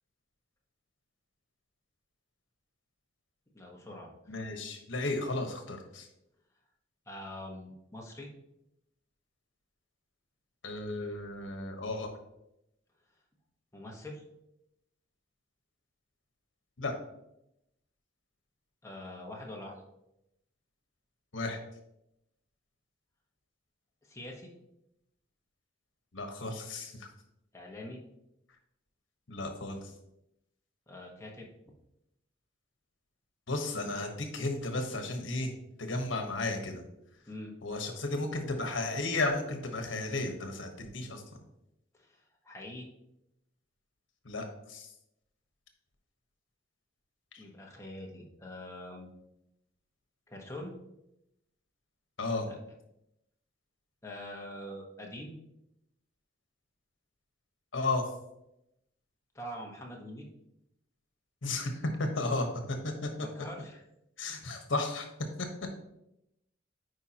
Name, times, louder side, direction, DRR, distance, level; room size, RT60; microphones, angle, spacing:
voice 1, 3.5-4.1 7.1-8.3 13.7-14.2 18.8-19.8 24.0-24.5 27.5-28.0 30.9-31.5 37.3-37.5 41.9-42.9 47.4-49.1 50.3-50.7 54.0-55.3 59.3-60.3 63.2-63.9, left 1 dB, 15° left, -1 dB, 1.2 m, -44 dB
voice 2, 4.3-6.1 10.6-12.1 16.8-16.9 21.3-21.6 26.1-27.1 29.3-29.9 33.5-35.5 35.8-36.8 37.6-41.2 44.2-44.9 47.3-47.4 52.2-52.5 57.7-58.0 61.4-62.9 64.2-65.1 65.4-65.5, left 2 dB, 80° left, 4 dB, 1.2 m, -34 dB
9.1 x 4.9 x 2.9 m, 0.83 s
head